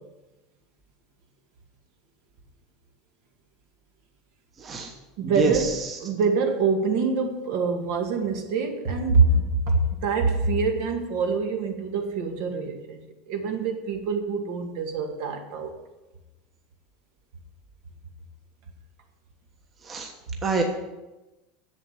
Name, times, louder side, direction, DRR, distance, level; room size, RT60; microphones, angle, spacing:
voice 1, 4.6-4.9 5.2-6.0 19.8-20.1 20.4-20.6, right 3 dB, 25° right, 2 dB, 1.2 m, -27 dB
voice 2, 5.2-5.7 6.0-13.0 13.3-15.7, right 4 dB, 65° right, 4 dB, 1.9 m, -25 dB
7.8 x 7.6 x 8.3 m, 1.1 s
supercardioid pair, 155°, 0 cm